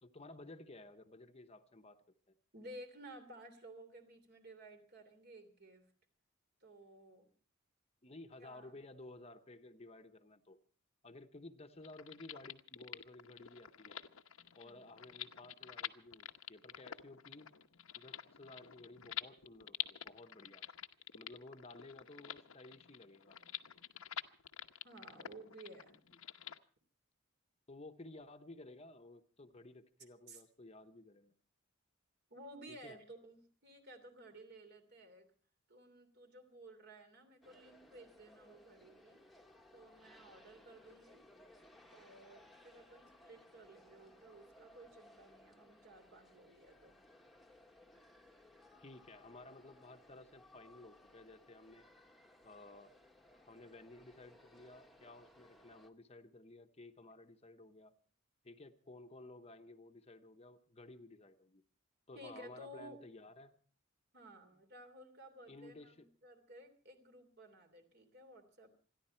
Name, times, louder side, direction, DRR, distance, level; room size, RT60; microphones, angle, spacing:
voice 1, 0.0-2.0 2.3-2.4 8.0-10.6 11.0-14.0 14.5-17.5 17.9-20.6 21.1-23.4 27.7-31.3 32.7-33.0 48.8-51.9 52.4-52.9 53.3-58.0 58.4-61.6 62.1-63.5 65.5-66.1, left 2 dB, 30° left, 7 dB, 0.9 m, -55 dB
voice 2, 2.5-5.9 6.6-7.3 8.4-8.7 14.6-14.9 24.8-26.0 30.3-30.4 32.3-35.3 35.7-39.2 39.7-41.2 41.9-47.0 62.1-63.0 64.1-68.7, right 1 dB, 50° right, 7 dB, 3.1 m, -55 dB
sound 1, 11.8-26.6, left 11 dB, 80° left, 0.9 m, -48 dB
sound 2, 37.4-55.9, left 1 dB, ahead, 1.2 m, -63 dB
27.5 x 11.0 x 4.4 m, 0.42 s
head